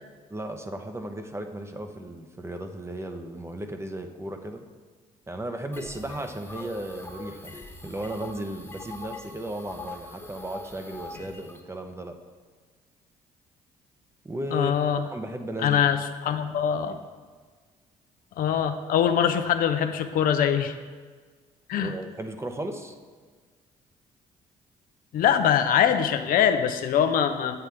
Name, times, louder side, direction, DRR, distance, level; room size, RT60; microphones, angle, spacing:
voice 1, 0.3-4.6 5.3-12.2 14.2-14.8 15.1-15.8 16.9-17.0 21.7-23.0, right 1 dB, 15° right, 6 dB, 0.9 m, -35 dB
sound 1, 5.7-11.6, left 2 dB, 15° left, 1.2 m, -42 dB
voice 2, 14.5-15.0 15.6-17.0 18.4-20.8 21.7-21.9 25.1-27.6, left 9 dB, 65° left, 8 dB, 0.6 m, -23 dB
8.2 x 7.8 x 3.5 m, 1.5 s
supercardioid pair, 60°, 15 cm